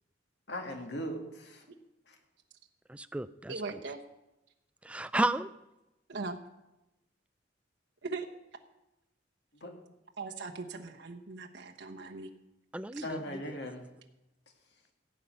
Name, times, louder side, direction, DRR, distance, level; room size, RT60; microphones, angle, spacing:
voice 1, 0.5-1.6 2.1-2.2 9.6-9.7 13.0-13.8, equal, 65° left, 3 dB, 2.2 m, -39 dB
voice 2, 2.9-3.8 4.8-5.5 12.7-13.2, right 1 dB, 5° right, 14 dB, 0.4 m, -32 dB
voice 3, 3.5-4.0 6.1-6.4 8.0-8.3 10.2-12.3 12.9-13.1, right 3 dB, 70° right, 2 dB, 1.1 m, -39 dB
16.5 x 5.6 x 9.1 m, 0.94 s
head